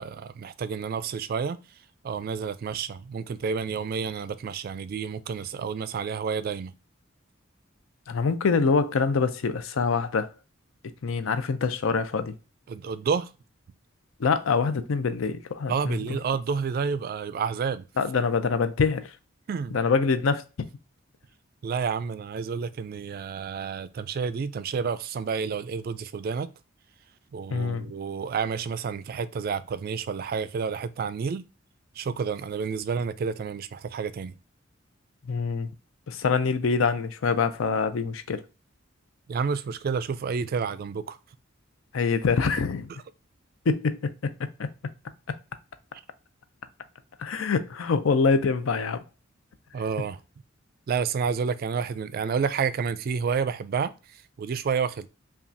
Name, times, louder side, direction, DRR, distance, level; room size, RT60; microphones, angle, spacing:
voice 1, 0.0-1.6 2.0-6.7 12.7-13.3 15.7-17.9 19.5-19.8 21.6-26.5 27.3-31.4 32.0-34.3 39.3-41.2 49.7-50.2 50.9-55.1, right 6 dB, 50° right, 0.3 m, -30 dB
voice 2, 8.1-10.3 11.0-12.3 14.2-16.2 18.0-19.1 19.7-20.7 27.5-27.9 35.3-35.7 36.1-38.4 41.9-42.9 43.7-44.0 47.2-49.0, left 5 dB, 90° left, 0.5 m, -25 dB
5.6 x 2.3 x 2.6 m
head